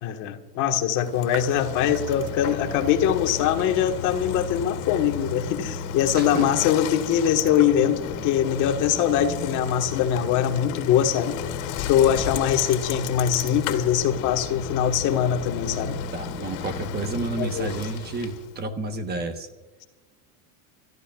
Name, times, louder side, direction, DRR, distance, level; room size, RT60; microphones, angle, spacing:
voice 1, 0.0-11.4 11.9-16.0 17.4-17.7, left 9 dB, 45° left, 5 dB, 1.6 m, -22 dB
Bicycle, 1.0-18.6, left 7 dB, 65° left, 2.2 m, -33 dB
sound 1, 1.0-5.0, right 8 dB, 80° right, 2.5 m, -45 dB
voice 2, 6.1-6.5 16.1-19.5, right 3 dB, 25° right, 7 dB, 1.2 m, -31 dB
29.0 x 14.0 x 2.4 m, 1.2 s
supercardioid pair, 145°, 41 cm